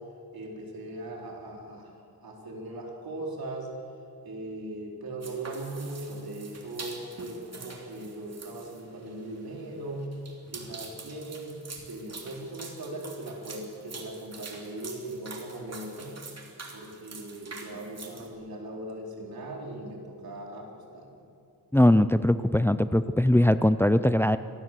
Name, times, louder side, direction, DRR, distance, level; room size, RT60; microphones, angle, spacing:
voice 1, 0.3-1.9 2.2-3.7 4.2-10.1 10.5-11.6 11.9-16.1 16.7-21.1, right 2 dB, 85° right, 0 dB, 4.2 m, -39 dB
sound 1, 5.2-18.3, right 4 dB, 45° right, 3.3 m, -45 dB
voice 2, 21.7-24.4, left 1 dB, 5° left, 13 dB, 0.5 m, -21 dB
25.0 x 19.5 x 7.6 m, 2.5 s
wide cardioid pair, 130°, 35 cm